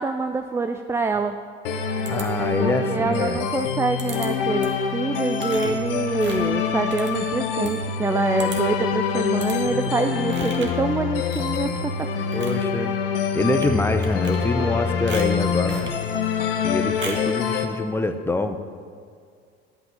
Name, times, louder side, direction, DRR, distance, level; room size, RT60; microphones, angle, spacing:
voice 1, 0.0-1.3 2.6-4.7 4.9-11.7, right 4 dB, 10° right, 8 dB, 0.4 m, -25 dB
sound 1, 1.6-17.6, left 6 dB, 60° left, 1.2 m, -25 dB
voice 2, 2.1-3.4 12.3-12.9 13.3-15.9 16.6-18.6, left 2 dB, 5° left, 8 dB, 0.8 m, -25 dB
sound 2, 2.1-2.8 4.0-4.3 4.6-4.9 5.4-7.8 8.1-8.2 8.4-8.8 9.4-9.6 10.3-10.8 11.3-11.8 12.2-12.7 13.5-13.7 14.0-14.7 15.1-16.0 17.0-17.3, right 4 dB, 35° right, 1.9 m, -38 dB
12.0 x 5.9 x 7.1 m, 2.2 s
figure-of-eight pair, 65°, 32 cm